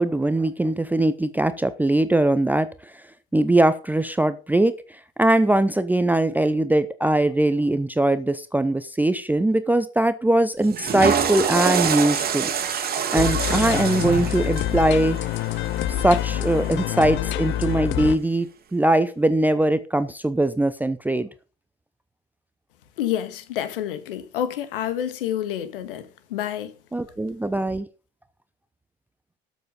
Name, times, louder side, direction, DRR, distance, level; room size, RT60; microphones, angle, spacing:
voice 1, 0.0-3.0 3.3-12.5 13.1-15.2 15.9-21.3 26.9-27.9, right 1 dB, 5° right, 0.7 m, -21 dB
Water / Toilet flush, 10.6-16.8, right 7 dB, 30° right, 2.2 m, -26 dB
sound 1, 13.2-18.2, left 12 dB, 40° left, 0.7 m, -26 dB
voice 2, 23.0-26.7, left 10 dB, 65° left, 1.7 m, -28 dB
13.0 x 7.2 x 5.3 m
figure-of-eight pair, 70°, 29 cm